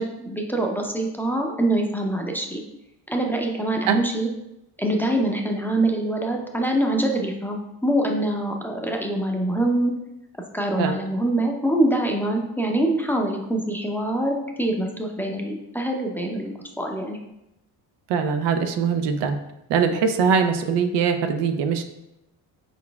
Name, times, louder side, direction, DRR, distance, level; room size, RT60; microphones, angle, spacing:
voice 1, 0.0-2.6 3.1-4.3 4.8-9.9 10.5-16.5 16.8-17.2, right 1 dB, 5° left, 1 dB, 0.6 m, -24 dB
voice 2, 18.1-19.4 19.7-21.8, right 6 dB, 75° right, 7 dB, 0.6 m, -22 dB
4.4 x 4.0 x 2.3 m, 0.88 s
cardioid pair, 80°, 43 cm